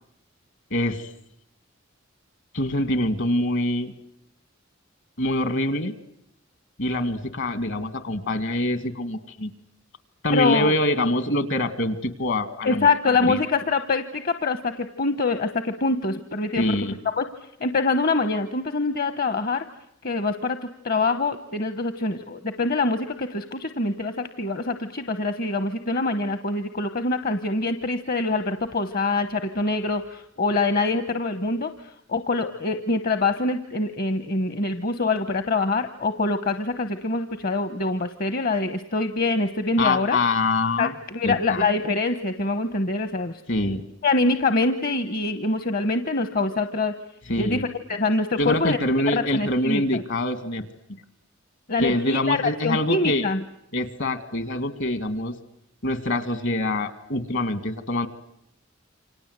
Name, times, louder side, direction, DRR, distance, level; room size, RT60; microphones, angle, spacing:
voice 1, 0.7-1.1 2.5-3.9 5.2-5.9 6.8-9.5 10.2-12.9 13.2-13.4 16.6-16.9 39.8-40.9 41.2-41.7 43.5-43.8 47.3-47.6 48.4-50.7 51.8-53.3 53.7-55.3 55.8-58.1, left 1 dB, 65° left, 12 dB, 2.2 m, -25 dB
voice 2, 10.3-10.7 12.6-16.8 17.0-17.2 17.6-19.6 20.0-40.2 40.8-43.4 44.0-46.9 47.4-48.8 49.1-50.0 51.7-52.4 52.6-53.4, left 3 dB, 45° left, 10 dB, 1.0 m, -25 dB
28.5 x 25.5 x 8.1 m, 0.76 s
head